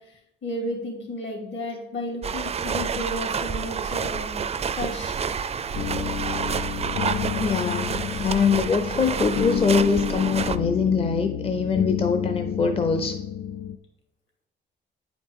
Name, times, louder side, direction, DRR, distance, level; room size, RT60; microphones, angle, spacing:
voice 1, 0.1-4.4 4.7-5.2, left 1 dB, 65° left, 1 dB, 2.6 m, -33 dB
sound 1, 2.2-10.6, right 6 dB, 30° right, 0.4 m, -29 dB
sound 2, 5.7-13.8, left 8 dB, 85° left, 0.4 m, -30 dB
voice 2, 7.4-13.1, left 5 dB, 30° left, 6 dB, 0.6 m, -23 dB
9.0 x 5.0 x 3.7 m, 0.87 s
cardioid pair, 90°, 20 cm